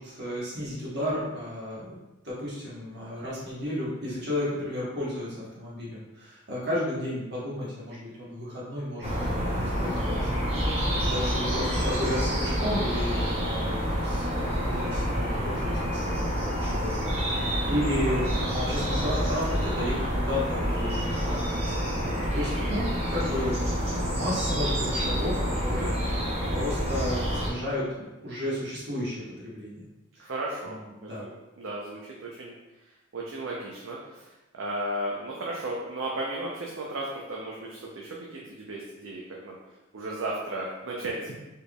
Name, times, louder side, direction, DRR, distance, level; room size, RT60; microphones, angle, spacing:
voice 1, 0.0-2.0 2.2-15.8 16.1-23.6 23.8-29.9 30.2-30.3 30.6-31.2, left 1 dB, 55° right, -7 dB, 1.2 m, -33 dB
sound 1, 9.0-27.5, equal, 30° right, 0.8 m, -28 dB
voice 2, 30.2-31.3 31.6-32.5 33.1-39.5 39.9-41.3, right 1 dB, 75° right, -3 dB, 0.6 m, -35 dB
4.4 x 3.4 x 2.3 m, 1.1 s
head